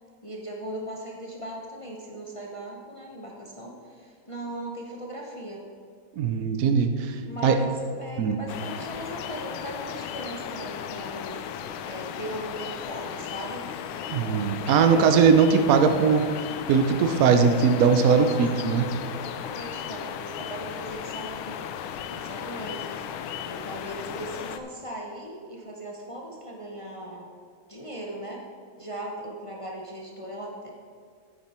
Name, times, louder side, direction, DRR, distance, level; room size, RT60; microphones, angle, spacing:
voice 1, 0.2-5.6 7.3-11.4 11.8-14.3 14.5-15.3 18.0-18.4 19.1-21.6 22.1-27.3 27.7-28.4 28.8-30.7, right 1 dB, 55° left, -2 dB, 0.3 m, -38 dB
voice 2, 6.2-7.6 8.2-8.4 14.1-18.9, right 6 dB, 75° right, 7 dB, 0.8 m, -20 dB
sound 1, 8.5-24.6, left 9 dB, 80° left, 1.4 m, -36 dB
9.8 x 8.9 x 4.3 m, 2.1 s
omnidirectional pair, 2.3 m